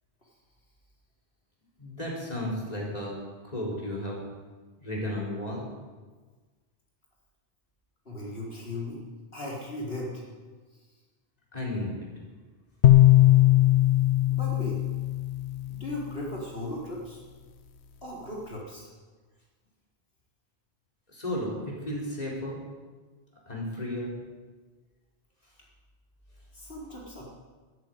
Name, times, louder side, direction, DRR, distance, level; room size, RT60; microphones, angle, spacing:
voice 1, 1.8-3.1 3.4-4.2 4.8-5.7 11.5-12.0 21.1-22.6 23.5-24.1, left 1 dB, 40° left, -3 dB, 4.3 m, -33 dB
voice 2, 8.0-9.0 9.3-10.3 10.7-10.8 14.3-14.8 15.7-17.2 18.0-18.9 26.5-27.2, left 1 dB, 65° left, -4 dB, 4.5 m, -37 dB
sound 1, 12.8-16.1, left 14 dB, 85° left, 1.1 m, -20 dB
13.0 x 10.5 x 9.3 m, 1.4 s
omnidirectional pair, 1.1 m